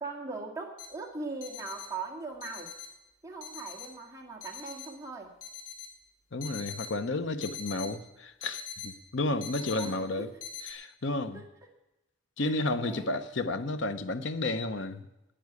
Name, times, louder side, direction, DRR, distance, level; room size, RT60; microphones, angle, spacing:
voice 1, 0.0-2.7 3.2-5.3 9.5-10.3 11.3-11.5 12.4-13.2, right 3 dB, 15° right, 1.9 m, -40 dB
sound 1, 0.8-0.9 1.4-1.9 2.4-2.9 3.4-3.9 4.4-4.9 5.4-5.9 6.4-6.9 7.4-7.9 8.4-8.9 9.4-9.9 10.4-10.7, left 7 dB, 80° left, 2.6 m, -41 dB
voice 2, 6.3-10.3 10.6-11.4 12.4-15.1, left 2 dB, 65° left, 0.8 m, -32 dB
10.0 x 8.7 x 9.5 m
head